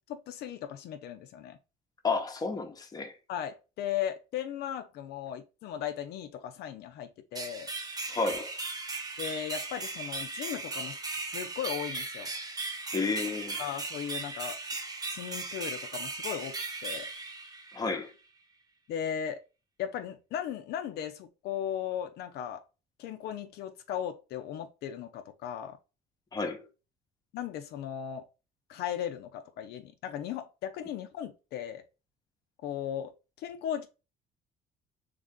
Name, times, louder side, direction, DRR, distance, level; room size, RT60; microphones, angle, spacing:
voice 1, 0.1-1.6 3.3-7.7 9.2-12.3 13.6-14.6 15.0-16.5 16.8-17.1 18.9-19.4 19.8-22.6 23.0-25.8 27.3-28.2 28.7-31.8 32.6-33.1 33.4-33.9, left 9 dB, 75° left, 0.5 m, -37 dB
voice 2, 2.0-3.2 8.1-8.5 12.9-13.6 17.7-18.1 26.3-26.7, left 4 dB, 20° left, 0.8 m, -31 dB
sound 1, 7.3-18.1, right 3 dB, 20° right, 0.7 m, -37 dB
3.3 x 2.5 x 3.5 m
cardioid pair, 110°, 17 cm